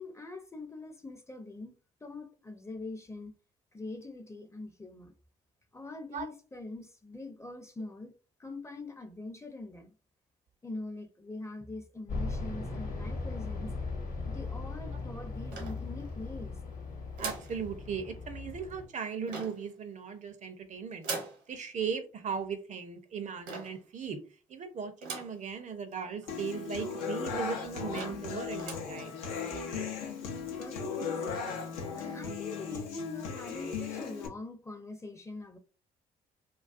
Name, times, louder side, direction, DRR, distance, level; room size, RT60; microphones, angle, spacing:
voice 1, 0.0-1.7 2.0-3.3 3.7-5.1 5.7-8.1 8.4-9.9 10.6-13.7 14.3-16.6 30.6-31.5 32.0-35.6, left 2 dB, 15° left, 0.5 m, -43 dB
sound 1, 12.1-18.9, left 3 dB, 45° left, 0.9 m, -38 dB
sound 2, 15.5-16.3 17.2-17.6 19.3-19.7 21.0-21.4 23.5-23.8 25.0-25.4 25.9-26.0 26.2-26.3 27.1-27.2 27.6-27.7 27.9-28.3 28.6-28.9, right 4 dB, 75° right, 0.8 m, -40 dB
voice 2, 17.2-21.1 21.5-24.2 24.5-29.1, right 6 dB, 40° right, 0.5 m, -38 dB
Human voice / Acoustic guitar, 26.3-34.3, left 5 dB, 85° left, 0.5 m, -37 dB
2.3 x 2.2 x 2.4 m
hypercardioid pair, 50°, 19 cm